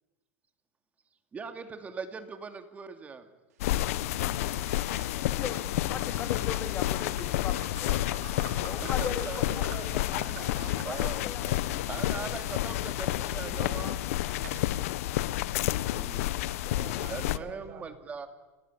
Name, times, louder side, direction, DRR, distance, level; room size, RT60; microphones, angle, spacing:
voice 1, 1.3-3.3 8.8-9.6 10.8-11.2 11.9-14.0 15.9-16.3 17.1-18.3, right 5 dB, 20° right, 8 dB, 2.5 m, -40 dB
sound 1, 3.6-17.4, left 14 dB, 70° left, 1.0 m, -30 dB
sound 2, 4.2-13.4 13.9-14.9, right 9 dB, 90° right, 4.4 m, -50 dB
voice 2, 5.2-8.0 8.6-9.6 10.0-10.3 10.8-11.7, left 7 dB, 25° left, 8 dB, 2.9 m, -39 dB
voice 3, 9.0-10.9 11.4-12.3 12.9-13.8 16.6-17.8, right 5 dB, 35° right, 5 dB, 6.8 m, -46 dB
29.5 x 18.0 x 9.8 m, 1.1 s
supercardioid pair, 140°, 8 cm